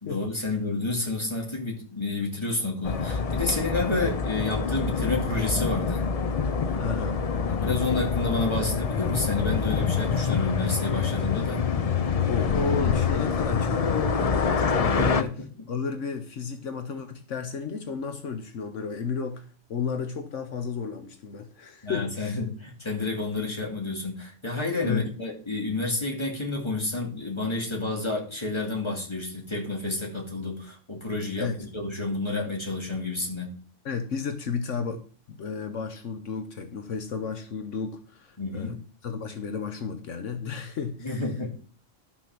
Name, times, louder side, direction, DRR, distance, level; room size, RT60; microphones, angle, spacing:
voice 1, 0.0-6.0 7.5-11.6 15.0-15.7 21.8-33.5 38.4-38.8 41.0-41.6, left 2 dB, 20° left, -1 dB, 2.6 m, -30 dB
sound 1, 2.8-15.2, left 5 dB, 45° left, 0.5 m, -26 dB
voice 2, 6.8-7.2 12.3-15.3 15.7-22.4 24.8-25.1 31.4-31.6 33.8-35.0 35.3-41.3, left 5 dB, 75° left, 7 dB, 1.3 m, -32 dB
12.0 x 6.0 x 6.0 m, 0.42 s
omnidirectional pair, 1.3 m